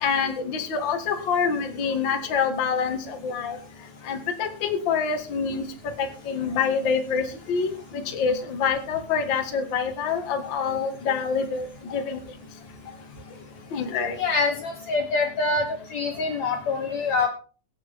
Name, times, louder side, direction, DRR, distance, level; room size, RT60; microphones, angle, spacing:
voice 1, 0.0-3.6 4.1-5.6 6.0-11.6 11.9-12.2 13.7-14.2, left 6 dB, 40° left, 5 dB, 1.9 m, -26 dB
voice 2, 14.2-15.7 15.9-17.3, left 4 dB, 60° left, 4 dB, 2.2 m, -25 dB
23.0 x 7.9 x 3.7 m, 0.39 s
omnidirectional pair, 4.0 m